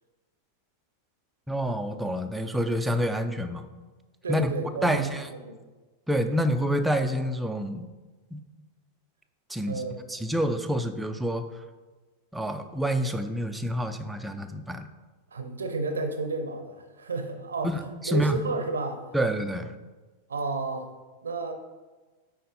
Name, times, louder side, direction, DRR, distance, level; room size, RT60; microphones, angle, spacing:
voice 1, 1.5-3.6 4.3-4.5 4.8-5.3 6.1-7.9 8.3-8.4 9.5-9.8 10.1-11.5 12.3-14.9 17.6-18.3 19.1-19.7, equal, 5° right, 6 dB, 0.5 m, -27 dB
voice 2, 4.2-5.6 9.7-10.0 15.3-17.8 18.0-19.0 20.3-20.9 21.2-21.5, right 3 dB, 70° right, 6 dB, 0.7 m, -31 dB
9.3 x 4.2 x 4.0 m, 1.3 s
figure-of-eight pair, 90°, 0 cm